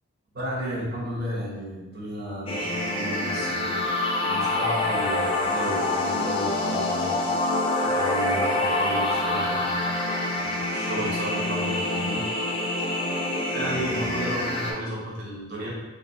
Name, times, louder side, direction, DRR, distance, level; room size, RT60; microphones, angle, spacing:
voice 1, 0.3-3.9 4.2-7.6 7.8-10.0 10.4-12.3 13.5-15.7, equal, 55° right, -5 dB, 0.9 m, -33 dB
sound 1, 2.5-14.7, left 2 dB, 25° left, 0.4 m, -26 dB
3.9 x 2.5 x 2.4 m, 1.2 s
head